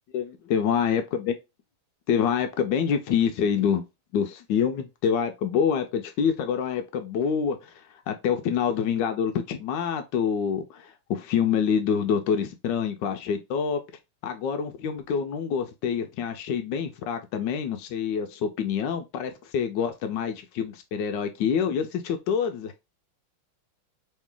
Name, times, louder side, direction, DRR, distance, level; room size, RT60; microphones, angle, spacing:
voice 1, 0.1-1.3 2.1-3.8 4.1-7.7 8.1-13.8 14.2-22.8, left 7 dB, 75° left, 1.0 m, -26 dB
3.2 x 3.1 x 3.6 m
omnidirectional pair, 2.3 m